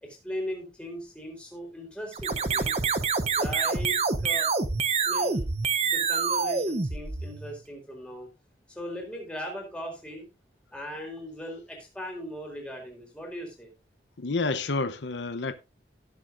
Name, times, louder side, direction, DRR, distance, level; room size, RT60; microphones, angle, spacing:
voice 1, 0.0-2.8 3.4-4.6 5.0-5.5 5.8-8.3 8.7-10.3 10.7-13.7, equal, 5° left, 4.0 m, -38 dB
sound 1, 2.1-7.6, right 5 dB, 35° right, 0.8 m, -27 dB
voice 2, 14.2-15.5, left 3 dB, 80° left, 0.8 m, -29 dB
17.5 x 7.4 x 2.6 m
head